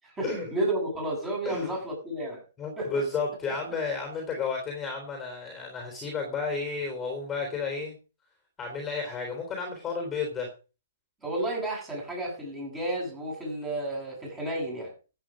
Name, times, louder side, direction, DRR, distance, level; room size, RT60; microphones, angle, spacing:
voice 1, 0.0-2.4 2.8-3.0 11.2-14.9, right 1 dB, 15° right, -1 dB, 7.8 m, -32 dB
voice 2, 2.6-7.9 8.6-10.5, left 4 dB, 15° left, 3 dB, 3.5 m, -32 dB
14.0 x 8.3 x 5.1 m, 0.34 s
hypercardioid pair, 140°, 0 cm